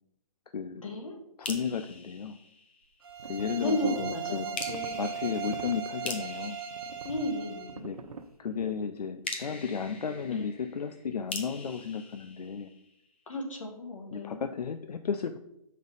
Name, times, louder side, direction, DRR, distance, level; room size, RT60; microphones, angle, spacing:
voice 1, 0.8-1.2 3.6-4.9 7.0-7.9 10.2-10.5 13.3-14.5, left 1 dB, 55° left, 2 dB, 1.8 m, -34 dB
voice 2, 1.4-2.4 3.3-4.5 5.0-6.6 7.8-8.0 8.4-12.7 14.1-15.4, left 6 dB, 85° left, 9 dB, 0.5 m, -34 dB
sound 1, 1.4-3.2 4.5-7.9 9.2-13.1, left 3 dB, 15° left, 0.4 m, -43 dB
sound 2, 3.0-7.8, right 6 dB, 40° right, 0.8 m, -38 dB
sound 3, 3.1-5.8 6.7-8.3, right 5 dB, 70° right, 0.7 m, -46 dB
6.4 x 5.4 x 4.0 m, 0.83 s
hypercardioid pair, 165°, 20 cm